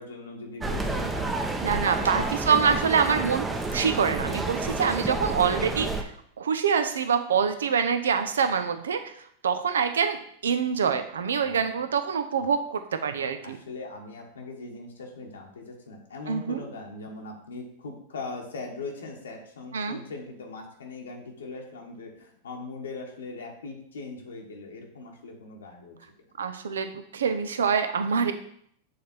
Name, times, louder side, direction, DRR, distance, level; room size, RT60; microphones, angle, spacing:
voice 1, 0.0-1.3 1.8-2.3 11.4-11.9 12.4-12.5 13.4-26.3, left 3 dB, 85° left, 1 dB, 1.2 m, -40 dB
sound 1, 0.6-6.0, right 3 dB, 15° right, 0.7 m, -30 dB
voice 2, 1.6-9.0 9.4-13.6 16.3-16.6 19.7-20.0 26.4-28.3, right 6 dB, 80° right, 9 dB, 0.6 m, -25 dB
6.5 x 3.4 x 4.3 m, 0.66 s
hypercardioid pair, 100°, 0 cm